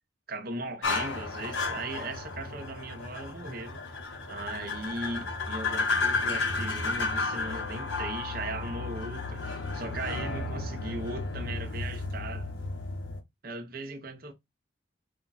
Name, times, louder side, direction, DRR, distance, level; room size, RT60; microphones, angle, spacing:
voice 1, 0.3-3.8 4.3-9.4 9.7-12.5 13.4-14.3, right 2 dB, 50° right, 0.9 m, -38 dB
sound 1, 0.8-13.2, left 3 dB, 85° left, 1.1 m, -33 dB
5.2 x 2.4 x 4.0 m
head